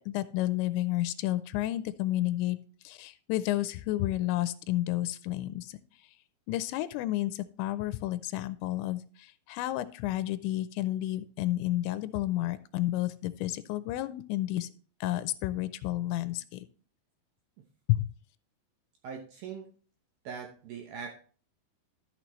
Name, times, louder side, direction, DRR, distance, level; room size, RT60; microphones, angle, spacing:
voice 1, 0.1-2.6 2.8-5.8 6.5-14.7 15.0-16.7 17.9-18.1, left 15 dB, 90° left, 14 dB, 2.9 m, -31 dB
voice 2, 19.0-19.7 20.2-21.2, right 6 dB, 70° right, 2 dB, 2.4 m, -41 dB
13.0 x 6.4 x 3.1 m, 0.42 s
omnidirectional pair, 5.1 m